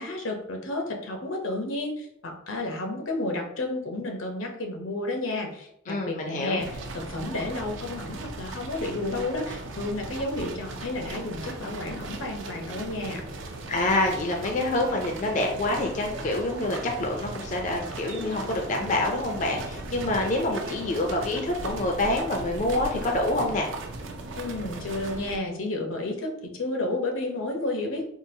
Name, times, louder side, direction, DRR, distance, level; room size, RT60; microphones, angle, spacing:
voice 1, 0.0-13.2 24.4-28.1, left 2 dB, 85° left, 3 dB, 0.7 m, -31 dB
voice 2, 5.9-6.6 13.7-23.7, left 2 dB, 40° left, 1 dB, 0.4 m, -27 dB
sound 1, 6.6-25.4, right 2 dB, 75° right, 0.5 m, -37 dB
3.8 x 2.4 x 2.7 m, 0.76 s
head